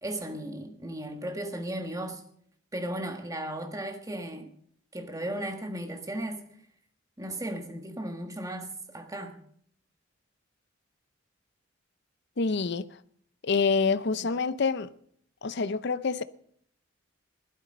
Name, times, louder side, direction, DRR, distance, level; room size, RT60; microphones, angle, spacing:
voice 1, 0.0-2.2 2.7-4.5 4.9-6.4 7.2-9.4, right 1 dB, 15° right, 1.5 m, -35 dB
voice 2, 12.4-12.9 13.4-14.9 15.4-16.2, left 4 dB, 60° left, 0.6 m, -26 dB
15.5 x 12.0 x 5.3 m
head